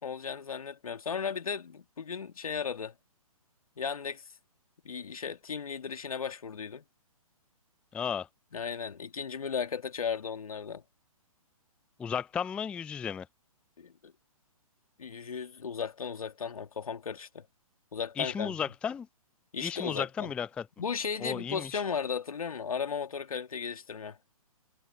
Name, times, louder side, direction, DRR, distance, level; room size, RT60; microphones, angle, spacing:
voice 1, 0.0-2.9 3.8-4.2 4.8-6.8 8.5-10.8 13.8-14.1 15.0-17.5 17.9-18.5 19.5-20.3 20.8-24.2, left 6 dB, 70° left, 2.0 m, -35 dB
voice 2, 7.9-8.3 12.0-13.3 18.2-19.1 19.6-20.7 21.2-21.8, left 7 dB, 5° left, 0.4 m, -34 dB
figure-of-eight pair, 130°, 19 cm